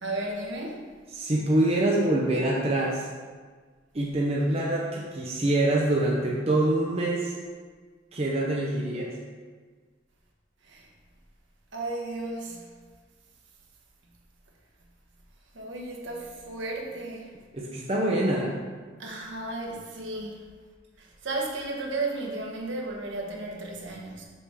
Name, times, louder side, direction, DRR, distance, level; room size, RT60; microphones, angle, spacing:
voice 1, 0.0-0.8 10.6-10.9 11.7-12.7 15.5-17.3 19.0-20.4 21.0-24.2, right 2 dB, 70° right, -1 dB, 1.3 m, -34 dB
voice 2, 1.1-3.1 3.9-7.3 8.1-9.2 17.5-18.5, right 1 dB, 30° right, -3 dB, 0.7 m, -25 dB
6.8 x 6.0 x 3.6 m, 1.5 s
head